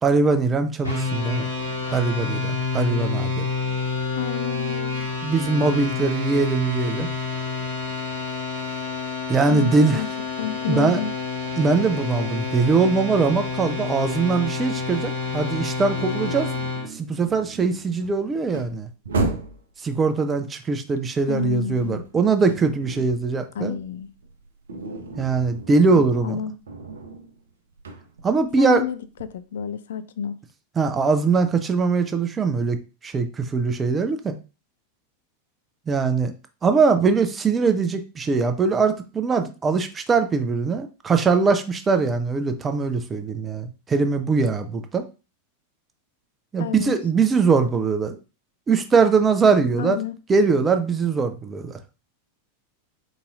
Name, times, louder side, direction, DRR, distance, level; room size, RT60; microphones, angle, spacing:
voice 1, 0.0-1.5 1.9-3.5 5.2-7.1 9.3-10.0 10.7-11.0 11.6-16.5 16.9-18.9 19.8-23.8 25.2-26.4 28.2-28.8 30.8-34.4 35.9-36.3 36.6-45.0 46.5-48.2 48.7-50.0 50.3-51.8, right 4 dB, 20° right, 0.5 m, -21 dB
sound 1, 0.8-16.9, left 4 dB, 85° left, 1.1 m, -28 dB
voice 2, 4.2-5.1 9.5-10.1 10.4-11.1 21.3-22.0 23.5-24.1 25.9-26.5 28.6-30.4 46.6-46.9 49.8-50.2, left 8 dB, 60° left, 0.3 m, -29 dB
sound 2, 15.9-19.7 21.1-23.3 23.6-29.4, right 2 dB, 65° right, 0.6 m, -34 dB
4.0 x 4.0 x 2.4 m
figure-of-eight pair, 90°, 0 cm